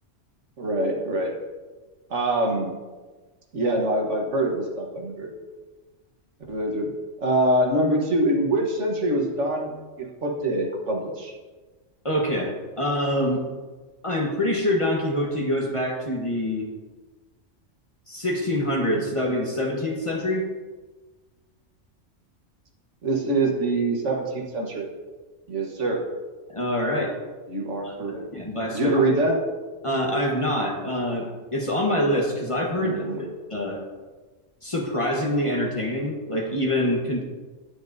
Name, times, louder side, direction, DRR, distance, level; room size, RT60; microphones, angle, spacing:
voice 1, 0.6-1.3 2.1-2.7 3.5-5.3 6.5-6.9 7.2-9.7 10.0-11.3 23.0-24.9 25.5-26.0 27.5-28.2 28.7-29.4 32.8-33.3, right 1 dB, 70° right, 1 dB, 1.5 m, -24 dB
voice 2, 12.0-13.4 14.0-16.7 18.1-20.4 26.5-27.1 27.8-27.9 28.3-29.0 29.8-33.0 33.5-33.8 34.6-37.2, left 1 dB, 25° left, -1 dB, 1.2 m, -25 dB
9.4 x 9.1 x 2.6 m, 1.3 s
omnidirectional pair, 1.3 m